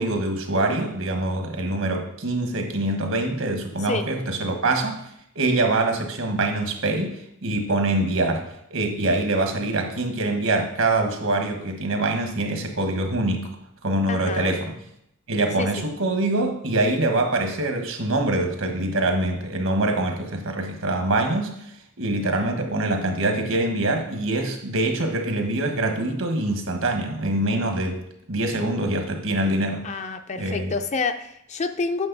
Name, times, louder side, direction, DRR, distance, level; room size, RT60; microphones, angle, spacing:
voice 1, 0.0-5.0 5.3-7.1 7.4-8.4 8.7-13.5 13.8-14.7 15.3-21.6 22.0-28.0 28.3-29.9 30.3-30.7, right 2 dB, 85° right, 4 dB, 1.4 m, -24 dB
voice 2, 14.1-14.6 15.6-15.7 29.8-32.1, left 4 dB, 35° left, 8 dB, 0.5 m, -28 dB
8.8 x 6.2 x 4.0 m, 0.76 s
head